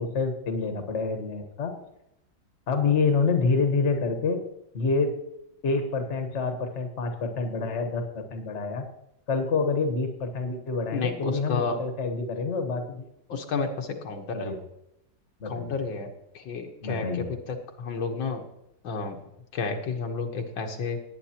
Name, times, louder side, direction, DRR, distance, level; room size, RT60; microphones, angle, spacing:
voice 1, 0.0-1.8 2.7-4.4 4.7-5.2 5.6-8.9 9.3-13.1 14.3-14.6 15.4-15.7 16.8-17.3, left 4 dB, 40° left, 6 dB, 1.4 m, -27 dB
voice 2, 10.9-11.8 13.3-14.5 15.5-18.4 18.8-19.2 19.5-21.0, left 4 dB, 80° left, 3 dB, 1.9 m, -31 dB
19.0 x 9.0 x 2.9 m, 0.83 s
omnidirectional pair, 2.1 m